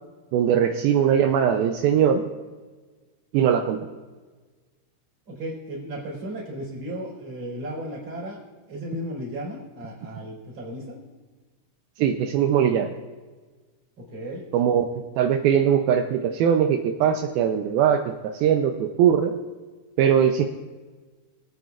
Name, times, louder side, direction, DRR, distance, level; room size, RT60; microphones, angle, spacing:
voice 1, 0.3-2.2 3.3-3.9 12.0-12.9 14.5-14.9 15.2-19.4 20.0-20.4, right 8 dB, 80° right, 5 dB, 2.3 m, -21 dB
voice 2, 5.3-8.4 8.7-11.0 14.0-14.4, right 1 dB, 35° right, -5 dB, 4.7 m, -35 dB
23.0 x 9.0 x 2.4 m, 1.4 s
omnidirectional pair, 4.6 m